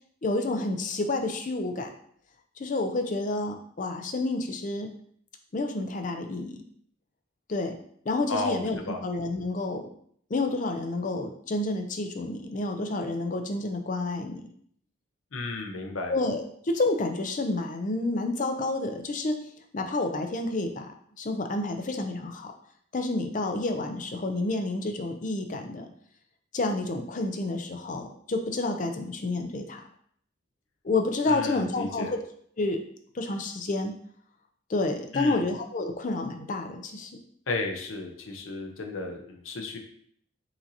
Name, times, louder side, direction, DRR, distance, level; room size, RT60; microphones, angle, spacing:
voice 1, 0.2-1.9 2.6-4.9 5.5-6.7 7.5-7.8 8.1-9.9 10.3-14.5 16.1-19.4 19.7-22.5 22.9-25.9 26.5-29.8 30.8-32.2 32.6-32.8 33.1-34.0 34.7-37.1, left 2 dB, 40° left, 6 dB, 0.4 m, -29 dB
voice 2, 8.3-9.0 15.3-16.1 31.3-32.1 35.1-35.4 37.5-39.8, left 2 dB, 85° left, 3 dB, 0.7 m, -33 dB
5.7 x 2.7 x 2.7 m, 0.63 s
head